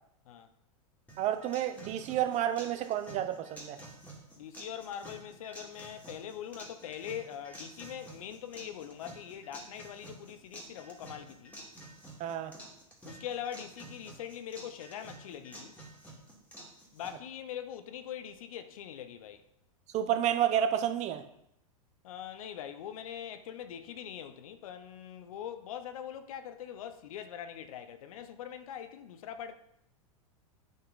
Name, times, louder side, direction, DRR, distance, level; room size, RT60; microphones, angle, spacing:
sound 1, 1.1-17.1, right 1 dB, 10° left, 2.3 m, -50 dB
voice 1, 1.2-3.8 12.2-12.5 19.9-21.2, right 10 dB, 40° right, 0.9 m, -30 dB
voice 2, 4.4-11.6 13.0-15.8 16.9-19.4 22.0-29.5, left 9 dB, 75° left, 0.8 m, -42 dB
8.8 x 5.5 x 4.0 m
hypercardioid pair, 110°, 18 cm